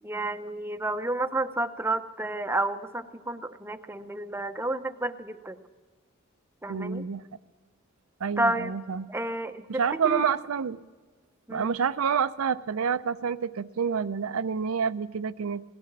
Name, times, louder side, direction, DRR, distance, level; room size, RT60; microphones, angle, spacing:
voice 1, 0.0-5.6 6.6-7.0 8.4-8.7 9.1-10.2 11.5-11.7, right 2 dB, 10° right, 10 dB, 0.6 m, -31 dB
voice 2, 6.7-7.2 8.2-9.1 9.8-10.8 11.5-15.6, right 6 dB, 80° right, 13 dB, 0.5 m, -28 dB
17.5 x 12.5 x 5.9 m, 1.4 s
head